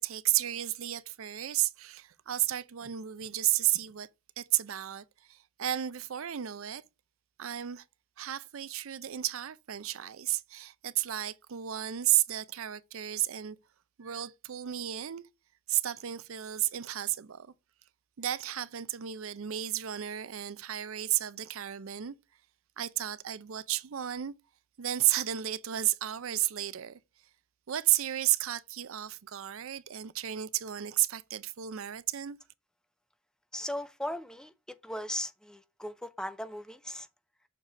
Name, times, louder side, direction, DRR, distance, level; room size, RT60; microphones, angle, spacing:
voice 1, 0.0-4.1 4.4-6.8 7.4-7.8 8.2-13.6 14.0-15.2 15.7-17.5 18.2-22.1 22.8-24.3 24.8-27.0 27.7-32.4, right 13 dB, 75° right, 0.5 m, -32 dB
voice 2, 33.5-34.5 34.8-37.1, left 1 dB, 5° left, 0.4 m, -37 dB
6.7 x 4.1 x 4.6 m
head